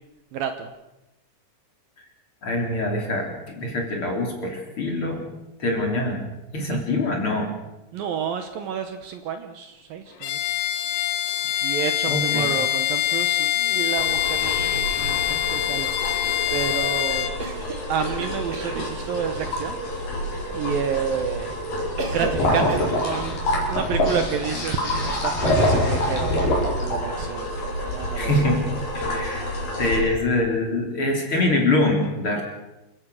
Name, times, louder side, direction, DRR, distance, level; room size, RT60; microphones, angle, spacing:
voice 1, 0.3-0.7 6.6-6.8 7.9-10.5 11.0-11.1 11.6-16.2 16.5-17.3 17.9-19.8 20.5-21.6 22.1-23.4 23.7-27.5 27.8-28.3, right 8 dB, 70° right, 8 dB, 2.5 m, -30 dB
voice 2, 2.4-5.2 5.6-6.2 6.5-7.5 12.1-12.5 28.1-28.6 28.9-29.5 29.8-32.4, left 2 dB, 30° left, 2 dB, 3.9 m, -24 dB
Bowed string instrument, 10.2-17.4, left 13 dB, 75° left, 3.1 m, -24 dB
sound 1, 14.0-30.0, left 1 dB, 55° left, 6.4 m, -26 dB
Cough, 17.4-19.0 22.0-22.4 22.7-23.1, right 2 dB, 30° right, 2.2 m, -34 dB
28.0 x 16.0 x 6.5 m, 1.0 s
omnidirectional pair, 4.9 m